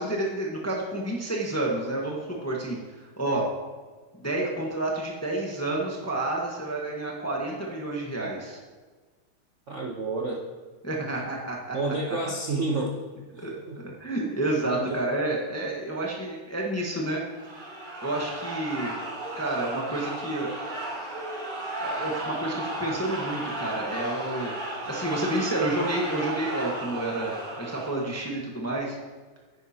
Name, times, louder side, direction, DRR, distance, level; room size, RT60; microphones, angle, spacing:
voice 1, 0.0-3.5 4.2-8.6 10.8-12.2 13.4-13.5 13.8-17.2 18.0-18.9 19.4-20.5 21.8-24.5 24.9-29.0, right 2 dB, 10° left, -2 dB, 0.9 m, -30 dB
voice 2, 9.7-10.4 11.7-12.9 13.4-13.8 14.6-15.1, right 2 dB, 50° right, -2 dB, 0.9 m, -30 dB
sound 1, 17.3-28.3, right 1 dB, 85° right, 4.1 m, -34 dB
10.5 x 9.6 x 2.9 m, 1.4 s
omnidirectional pair, 2.3 m